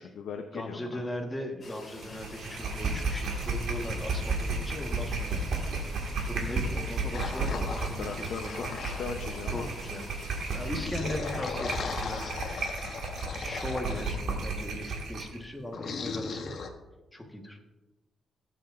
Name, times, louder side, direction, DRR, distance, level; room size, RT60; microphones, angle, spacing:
voice 1, 0.0-1.0 7.3-7.7 8.0-9.7, left 6 dB, 80° left, 4 dB, 0.7 m, -39 dB
voice 2, 0.5-5.9 6.2-8.7 9.5-10.1 10.5-12.7 13.3-16.5 17.1-17.6, left 1 dB, 10° left, 2 dB, 1.4 m, -38 dB
sound 1, 1.6-10.9, left 2 dB, 40° left, 2.2 m, -48 dB
sound 2, 2.0-15.4, right 3 dB, 80° right, 1.9 m, -33 dB
sound 3, 7.1-9.5 10.6-14.2 15.7-16.7, left 4 dB, 60° left, 1.0 m, -37 dB
17.5 x 7.7 x 2.5 m, 1.1 s
cardioid pair, 130°, 0 cm